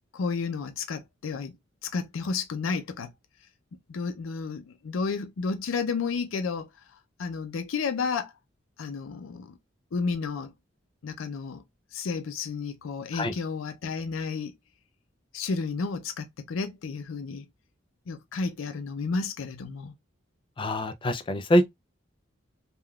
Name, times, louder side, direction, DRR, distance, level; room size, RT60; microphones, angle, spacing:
voice 1, 0.1-1.6 1.8-3.1 3.9-6.7 7.2-8.3 8.8-9.6 9.9-10.5 11.0-11.6 11.9-14.5 15.3-17.4 18.1-19.9, left 4 dB, 90° left, 0.4 m, -32 dB
voice 2, 20.6-21.7, equal, 25° left, 0.4 m, -24 dB
3.5 x 2.2 x 2.3 m
head